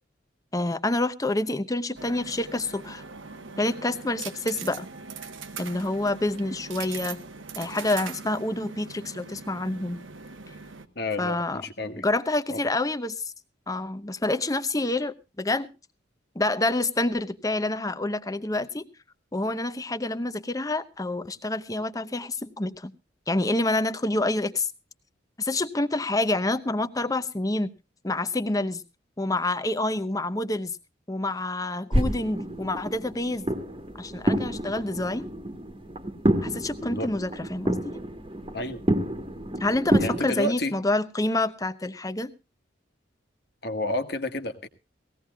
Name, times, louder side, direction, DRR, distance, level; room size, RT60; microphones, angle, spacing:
voice 1, 0.5-3.0 3.6-4.9 5.6-7.2 7.6-10.0 11.2-11.7 12.0-13.3 13.7-15.7 16.3-18.9 19.3-22.9 23.3-24.7 25.4-27.7 28.0-28.8 29.2-30.8 31.1-33.5 34.0-35.3 36.4-38.0 39.6-42.3, left 2 dB, 20° left, 12 dB, 0.8 m, -27 dB
sound 1, 1.9-10.8, right 5 dB, 85° right, 1.2 m, -41 dB
voice 2, 10.9-12.0 12.5-12.6 36.8-37.1 38.5-38.8 40.0-40.7 43.6-44.7, left 1 dB, 55° left, 8 dB, 1.5 m, -30 dB
sound 2, 31.9-40.3, right 1 dB, 30° right, 1.5 m, -28 dB
19.5 x 16.5 x 2.4 m, 0.28 s
head